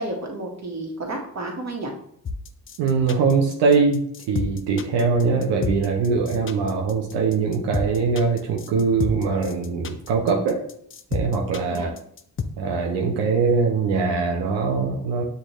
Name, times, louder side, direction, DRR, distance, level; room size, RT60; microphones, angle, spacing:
voice 1, 0.0-1.9 11.7-11.9, right 2 dB, 40° right, 1 dB, 1.3 m, -31 dB
sound 1, 2.2-12.4, left 5 dB, 30° left, 0.5 m, -30 dB
voice 2, 2.8-4.0 4.3-10.6 11.1-11.9 12.6-15.2, right 4 dB, 90° right, 1 dB, 0.6 m, -22 dB
6.4 x 2.5 x 3.0 m, 0.67 s
supercardioid pair, 50°, 41 cm